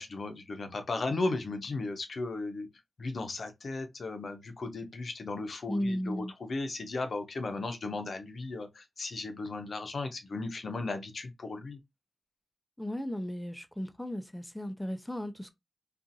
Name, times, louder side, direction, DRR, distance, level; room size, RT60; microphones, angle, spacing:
voice 1, 0.0-2.7 3.0-11.8, left 3 dB, 65° left, 0.6 m, -36 dB
voice 2, 5.7-6.3 12.8-15.5, equal, 10° left, 0.4 m, -35 dB
2.5 x 2.4 x 2.6 m
cardioid pair, 50°, 0 cm